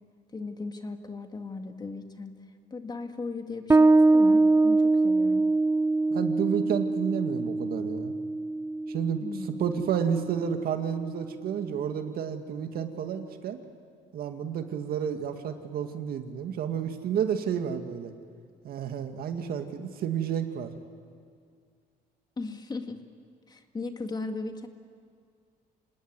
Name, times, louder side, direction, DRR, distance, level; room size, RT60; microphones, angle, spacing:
voice 1, 0.3-2.3 2.7-5.5 9.2-9.6 22.4-23.0 23.5-24.7, left 3 dB, 25° left, 6 dB, 2.0 m, -37 dB
Bass guitar, 3.7-10.9, right 3 dB, 15° right, 0.6 m, -24 dB
voice 2, 6.1-8.1 8.9-9.2 9.6-13.6 14.1-18.1 18.6-20.7, right 8 dB, 65° right, 6 dB, 2.1 m, -31 dB
27.0 x 18.5 x 9.6 m, 2.2 s
cardioid pair, 110°, 17 cm